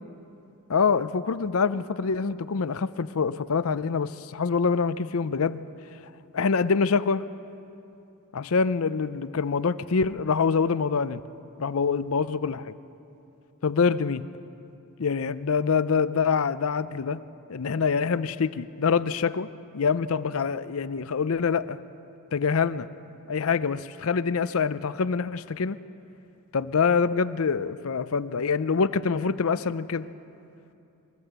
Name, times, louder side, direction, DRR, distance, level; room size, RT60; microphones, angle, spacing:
voice 1, 0.7-5.6 6.3-7.3 8.3-11.2 11.6-12.7 13.6-14.3 15.0-17.2 17.5-19.5 19.7-21.8 22.3-22.9 23.3-25.8 26.5-30.1, left 5 dB, 70° left, 15 dB, 0.6 m, -25 dB
23.5 x 15.5 x 8.1 m, 2.8 s
head